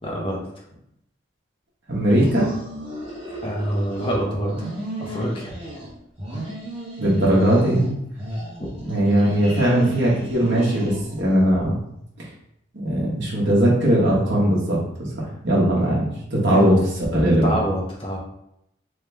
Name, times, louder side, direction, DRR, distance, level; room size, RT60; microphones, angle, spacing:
voice 1, 0.0-0.4 3.4-4.6 5.0-5.5 8.6-8.8 16.5-16.7 17.4-18.2, equal, 25° left, -2 dB, 0.8 m, -26 dB
voice 2, 1.9-2.5 7.0-8.0 8.8-11.8 12.2-12.3 12.8-14.8 15.2-16.8 17.1-17.5, right 1 dB, 60° right, -5 dB, 1.4 m, -19 dB
sound 1, 2.1-4.2 4.4-5.9 6.2-7.9 8.2-11.4, right 1 dB, 30° right, 1.5 m, -35 dB
3.4 x 3.0 x 3.4 m, 0.78 s
head